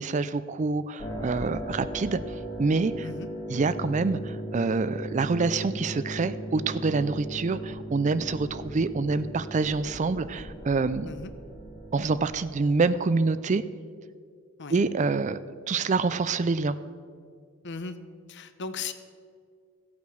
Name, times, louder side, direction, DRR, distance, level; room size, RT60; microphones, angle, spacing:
voice 1, 0.0-2.2 2.6-3.1 3.5-11.1 11.9-13.6 14.7-15.4 15.7-16.8, right 4 dB, 35° right, 14 dB, 0.4 m, -26 dB
sound 1, 1.0-12.2, right 1 dB, 20° left, 1.8 m, -37 dB
voice 2, 17.6-18.0 18.3-18.9, left 5 dB, 55° left, 10 dB, 0.9 m, -37 dB
15.5 x 8.5 x 6.4 m, 2.1 s
head